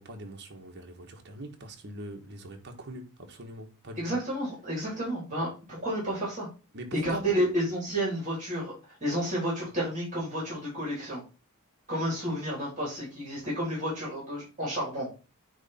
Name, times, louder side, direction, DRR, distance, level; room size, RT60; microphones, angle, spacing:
voice 1, 0.0-4.2 6.7-7.3, right 1 dB, 50° right, 1.4 m, -42 dB
voice 2, 4.0-6.5 6.9-8.7 9.0-11.2 11.9-15.1, equal, 35° right, 3.7 m, -31 dB
9.4 x 3.3 x 4.3 m
head